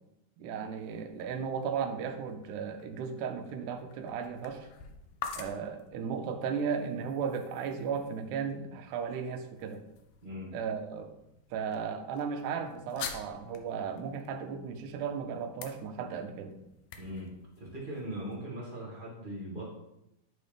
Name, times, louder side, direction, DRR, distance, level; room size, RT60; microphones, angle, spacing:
voice 1, 0.4-4.7 5.4-9.8 10.5-11.1 11.5-16.6, right 6 dB, 80° right, 6 dB, 2.1 m, -35 dB
sound 1, 0.5-18.4, left 7 dB, 80° left, 1.4 m, -49 dB
voice 2, 10.2-10.5 17.0-17.3 17.6-19.8, right 1 dB, 40° right, -5 dB, 0.7 m, -40 dB
9.1 x 4.1 x 3.3 m, 0.84 s
omnidirectional pair, 3.6 m